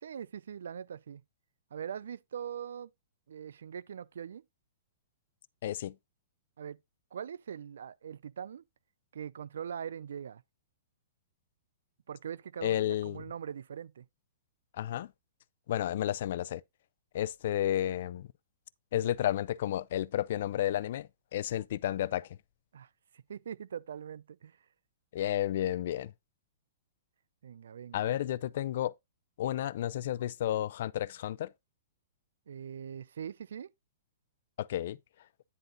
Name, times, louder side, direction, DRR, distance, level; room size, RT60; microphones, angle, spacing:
voice 1, 0.0-1.2 1.7-2.9 3.3-4.4 6.6-6.8 7.1-8.6 9.1-10.4 12.1-14.1 22.7-24.6 27.4-28.1 32.5-33.7, right 8 dB, 80° right, 0.4 m, -42 dB
voice 2, 5.6-5.9 12.6-13.2 14.8-15.1 15.7-16.6 17.1-18.3 18.9-22.3 25.1-26.1 27.9-28.9 29.4-31.5 34.6-35.0, left 12 dB, 55° left, 0.4 m, -32 dB
9.7 x 3.9 x 3.8 m
hypercardioid pair, 155°, 0 cm